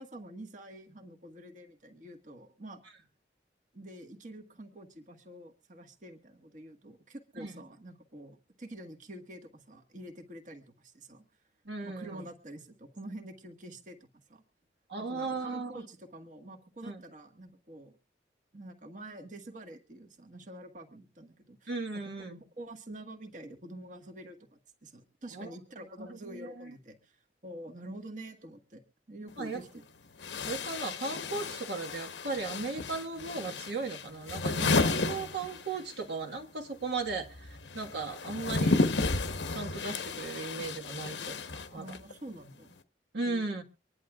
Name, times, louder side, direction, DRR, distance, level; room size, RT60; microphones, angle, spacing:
voice 1, 0.0-2.8 3.7-11.2 11.8-14.4 15.0-17.9 18.5-22.3 22.6-28.8 29.1-29.8 41.8-42.8 43.2-43.5, right 1 dB, 45° right, 1.6 m, -47 dB
voice 2, 11.6-12.2 14.9-15.8 16.8-17.0 21.7-22.4 25.3-25.5 26.0-26.7 29.4-29.6 30.4-38.8 39.5-42.0 43.1-43.6, right 3 dB, 70° right, 1.7 m, -37 dB
sound 1, 29.3-29.4 30.2-36.0 36.3-42.1, left 3 dB, 90° left, 1.0 m, -32 dB
25.0 x 10.5 x 2.4 m
head